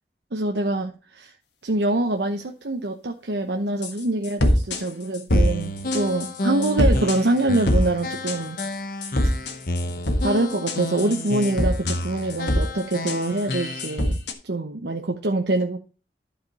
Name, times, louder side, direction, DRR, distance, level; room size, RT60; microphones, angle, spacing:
voice 1, 0.3-1.3 1.6-8.6 10.2-15.8, right 2 dB, 80° right, 3 dB, 0.9 m, -25 dB
sound 1, 3.8-4.0 4.2-4.8 5.1-5.5 5.9-6.3 6.6-7.2 7.5-7.8 8.3-8.7 9.0-10.2 10.5-12.0 12.3-12.6 12.9-14.3, left 1 dB, 85° left, 1.6 m, -22 dB
sound 2, 5.3-14.0, left 1 dB, 55° left, 0.9 m, -31 dB
11.5 x 5.1 x 4.1 m, 0.34 s
head